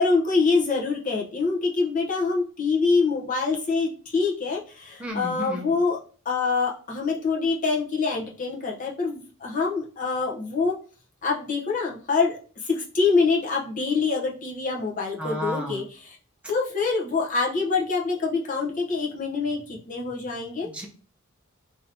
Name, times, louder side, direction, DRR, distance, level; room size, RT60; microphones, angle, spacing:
voice 1, 0.0-6.0 6.3-10.8 11.2-16.2 16.5-20.7, left 4 dB, 40° left, -1 dB, 0.7 m, -25 dB
voice 2, 5.0-5.7 15.2-15.8 20.6-20.9, equal, 5° right, -1 dB, 0.5 m, -32 dB
2.7 x 2.7 x 3.2 m, 0.39 s
head